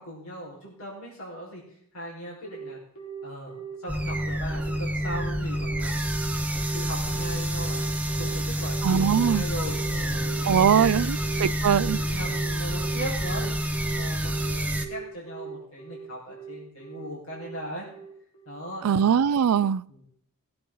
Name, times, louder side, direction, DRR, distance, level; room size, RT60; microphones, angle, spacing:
voice 1, 0.0-1.6 1.9-2.8 3.2-6.0 6.3-7.8 8.2-11.5 11.8-13.5 13.9-17.9 18.4-19.2 19.9-20.0, equal, 65° left, -5 dB, 4.9 m, -39 dB
Telephone, 2.4-18.6, right 6 dB, 90° left, 4.4 m, -40 dB
sound 1, 3.9-14.9, right 1 dB, 5° right, 0.9 m, -28 dB
voice 2, 8.8-9.4 10.5-12.0 18.8-19.8, right 8 dB, 85° right, 20 dB, 0.4 m, -21 dB
20.5 x 8.8 x 3.9 m, 0.67 s
head